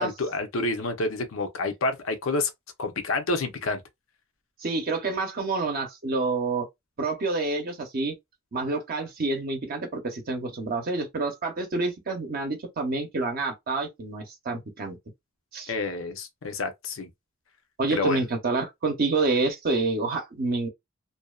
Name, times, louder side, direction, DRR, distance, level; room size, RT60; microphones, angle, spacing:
voice 1, 0.0-2.5 2.8-3.8 15.7-17.1 17.9-18.2, left 2 dB, 80° left, 0.6 m, -28 dB
voice 2, 4.6-6.7 7.0-8.1 8.5-15.0 15.5-15.7 17.8-20.7, right 3 dB, 50° right, 0.6 m, -28 dB
2.6 x 2.1 x 2.3 m
head